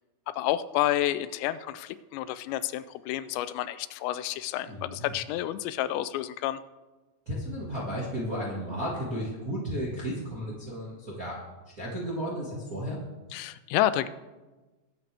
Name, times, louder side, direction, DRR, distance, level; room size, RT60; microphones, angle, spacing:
voice 1, 0.3-6.6 13.3-14.1, left 13 dB, 85° left, 14 dB, 2.8 m, -29 dB
voice 2, 4.6-5.1 7.2-11.4 11.8-13.0, equal, 45° right, -5 dB, 1.1 m, -33 dB
21.5 x 7.8 x 3.5 m, 1.2 s
omnidirectional pair, 5.1 m